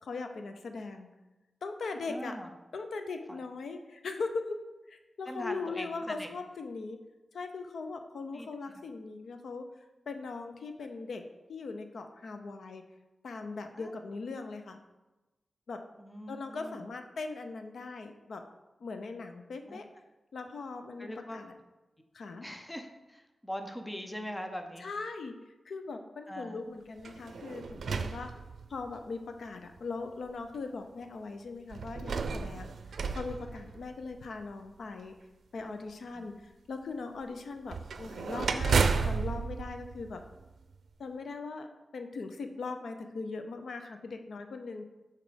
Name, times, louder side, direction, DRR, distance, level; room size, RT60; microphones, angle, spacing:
voice 1, 0.0-1.1 1.6-2.4 2.7-4.6 4.9-7.0 7.3-9.6 10.1-11.2 11.5-12.8 13.2-14.8 15.7-15.8 16.3-18.4 18.8-19.9 20.3-21.5 22.1-22.5 24.8-25.3 25.7-28.3 28.7-35.1 35.5-36.3 36.7-40.2 41.0-41.7 41.9-44.9, left 4 dB, 80° left, 6 dB, 0.5 m, -40 dB
voice 2, 2.1-2.5 3.3-3.4 5.3-6.3 8.3-8.5 13.8-13.9 16.0-16.8 19.7-19.8 21.0-21.4 22.4-24.9 26.3-26.6 36.1-36.3, equal, 10° left, 5 dB, 0.6 m, -41 dB
sound 1, 27.0-29.0 29.8-29.9 31.7-34.3 37.7-40.7, right 5 dB, 85° right, 0.4 m, -32 dB
6.1 x 4.2 x 5.0 m, 1.1 s
wide cardioid pair, 150°, 0 cm